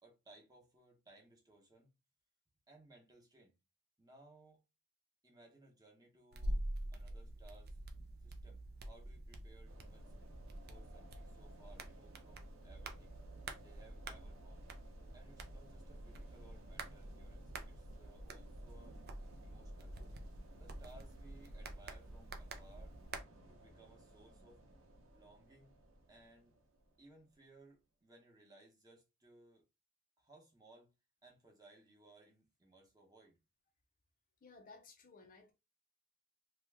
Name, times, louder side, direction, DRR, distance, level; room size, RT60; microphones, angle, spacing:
voice 1, 0.0-1.9 2.7-3.6 4.0-4.6 5.2-6.6 6.9-7.8 8.2-10.1 10.7-13.2 13.6-14.7 15.1-19.0 19.4-20.0 20.6-22.9 23.4-24.6 25.1-25.7 26.1-26.6 27.0-29.6 30.2-30.9 31.2-33.4, right 2 dB, 15° right, 0.8 m, -63 dB
sound 1, 6.3-23.2, right 1 dB, 45° right, 0.5 m, -47 dB
sound 2, 9.6-27.6, right 1 dB, 65° right, 0.8 m, -59 dB
voice 2, 34.4-35.5, left 3 dB, 40° left, 0.5 m, -58 dB
2.9 x 2.2 x 3.3 m
head